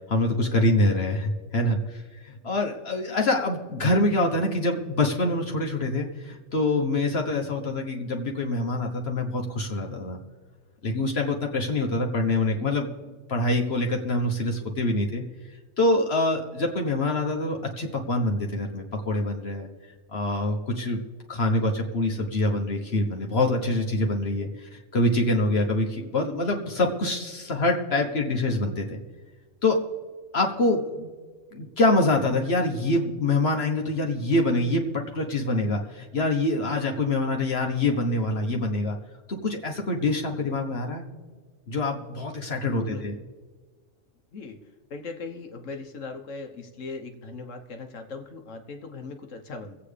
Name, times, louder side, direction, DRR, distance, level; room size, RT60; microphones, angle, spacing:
voice 1, 0.1-2.0 2.4-10.2 10.8-12.9 13.3-15.2 15.8-19.7 20.1-21.0 21.3-29.0 29.6-29.8 30.3-31.1 31.5-39.0 39.3-41.0 41.7-43.2, left 2 dB, 55° left, 1 dB, 1.4 m, -25 dB
voice 2, 44.9-49.8, left 4 dB, 85° left, 5 dB, 1.5 m, -39 dB
24.5 x 8.4 x 3.4 m, 1.4 s
omnidirectional pair, 1.3 m